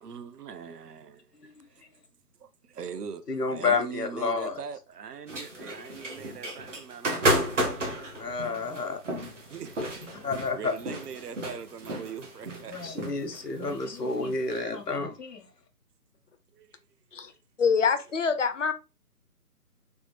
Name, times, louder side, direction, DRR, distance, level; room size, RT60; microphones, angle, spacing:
voice 1, 0.0-1.3 1.7-1.8 2.4-8.1 9.5-10.0 10.5-12.9 16.5-16.8 17.1-17.4, right 7 dB, 80° right, 0.6 m, -41 dB
voice 2, 3.3-4.6 8.0-9.0 10.0-10.7 12.7-15.4, left 4 dB, 90° left, 0.9 m, -30 dB
sound 1, 5.3-14.6, right 1 dB, 50° right, 0.8 m, -32 dB
voice 3, 17.6-18.7, left 5 dB, 55° left, 0.5 m, -25 dB
3.5 x 2.0 x 3.0 m
figure-of-eight pair, 155°, 47 cm